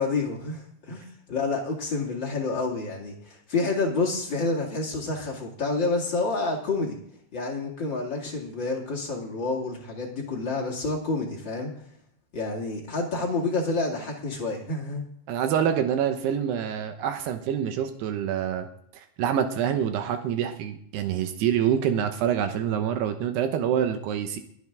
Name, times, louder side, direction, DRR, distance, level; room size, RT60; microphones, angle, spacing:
voice 1, 0.0-7.0 7.3-11.7 12.3-15.0, left 3 dB, 35° left, -1 dB, 2.0 m, -28 dB
voice 2, 15.3-18.7 18.9-24.4, right 9 dB, 75° right, 7 dB, 2.8 m, -26 dB
22.5 x 8.2 x 3.6 m, 0.65 s
omnidirectional pair, 5.2 m